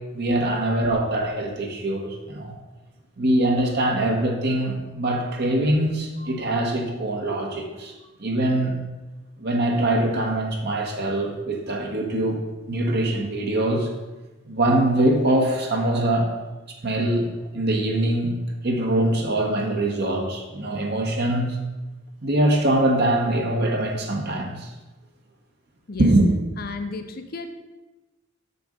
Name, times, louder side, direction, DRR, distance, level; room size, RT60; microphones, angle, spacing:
voice 1, 0.1-2.5 3.2-7.9 8.2-8.8 9.4-12.4 12.7-13.9 14.5-16.3 16.8-17.3 17.5-18.4 18.6-21.6 22.2-24.7 26.0-26.3, right 1 dB, 55° right, 1 dB, 1.3 m, -23 dB
voice 2, 26.6-27.5, left 3 dB, 50° left, 7 dB, 0.8 m, -33 dB
6.8 x 6.8 x 5.2 m, 1.1 s
head